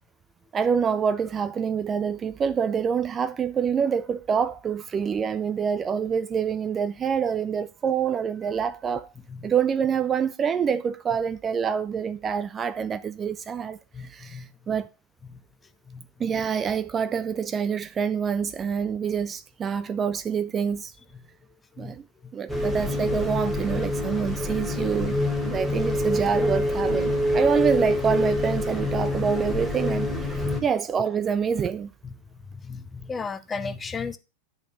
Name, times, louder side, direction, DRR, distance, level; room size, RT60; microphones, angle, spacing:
voice 1, 0.5-9.1 9.4-14.9 16.2-20.9 21.8-22.1 22.3-25.2 25.4-31.9, right 7 dB, 20° right, 0.4 m, -26 dB
voice 2, 13.9-14.5 15.3-15.4 15.9-16.0 21.8-21.9 22.2-22.3 30.4-30.6 32.5-34.2, left 4 dB, 15° left, 0.7 m, -34 dB
sound 1, 22.5-30.6, left 1 dB, 5° right, 1.7 m, -26 dB
10.5 x 4.3 x 6.6 m
figure-of-eight pair, 90°, 0 cm